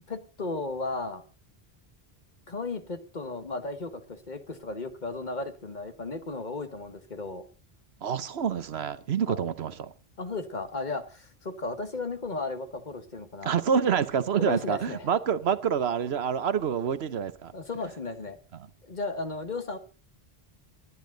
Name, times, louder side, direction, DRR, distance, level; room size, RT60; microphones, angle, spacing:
voice 1, 0.1-1.2 2.5-7.4 9.3-9.4 10.2-13.6 14.4-15.1 17.5-18.4 18.8-19.8, left 3 dB, 45° left, 1.6 m, -35 dB
voice 2, 8.0-9.9 13.4-17.5, right 7 dB, 85° right, 1.2 m, -27 dB
20.0 x 10.5 x 3.9 m
omnidirectional pair, 1.0 m